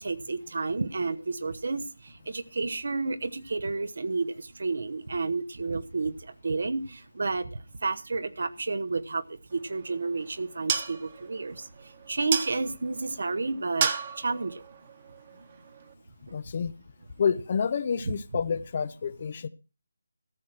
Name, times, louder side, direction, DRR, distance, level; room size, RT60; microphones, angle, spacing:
voice 1, 0.0-13.9 14.1-14.6 15.4-15.5 16.3-16.4 18.0-18.1, right 3 dB, 60° right, 1.0 m, -31 dB
sound 1, 9.5-15.9, right 6 dB, 30° right, 1.3 m, -35 dB
voice 2, 16.3-16.7 17.2-19.5, left 6 dB, 40° left, 0.7 m, -28 dB
14.0 x 6.3 x 5.9 m
figure-of-eight pair, 160°, 0 cm